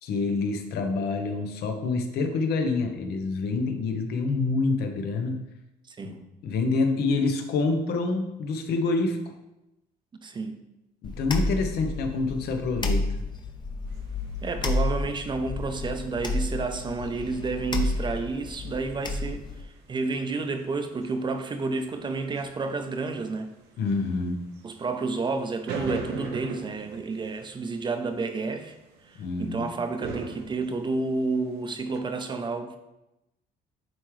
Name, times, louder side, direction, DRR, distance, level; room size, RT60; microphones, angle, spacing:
voice 1, 0.0-5.4 6.0-6.1 6.4-9.2 11.0-13.1 23.8-24.4 29.2-29.7, left 3 dB, 70° left, 5 dB, 1.0 m, -27 dB
voice 2, 5.9-6.2 10.2-10.6 14.4-23.5 24.6-28.7 29.1-32.8, right 3 dB, 25° right, 7 dB, 0.7 m, -30 dB
sound 1, 11.0-19.6, left 2 dB, 25° left, 0.7 m, -31 dB
sound 2, 13.9-32.0, right 4 dB, 85° right, 0.9 m, -44 dB
9.1 x 3.6 x 3.2 m, 0.93 s
cardioid pair, 110°, 17 cm